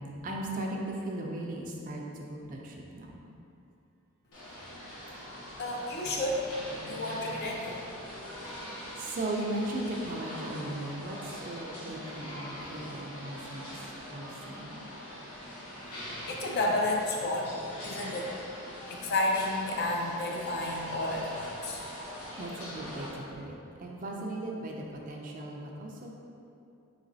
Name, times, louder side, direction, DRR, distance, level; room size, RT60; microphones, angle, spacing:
voice 1, 0.2-3.2 8.6-13.7 14.1-14.8 22.4-26.1, right 1 dB, 35° right, 0 dB, 0.3 m, -37 dB
sound 1, 4.3-23.1, left 1 dB, 90° left, 1.0 m, -43 dB
voice 2, 5.6-7.8 15.9-18.3 18.9-21.8, left 2 dB, 45° left, -1 dB, 0.4 m, -31 dB
4.0 x 3.0 x 2.6 m, 2.7 s
head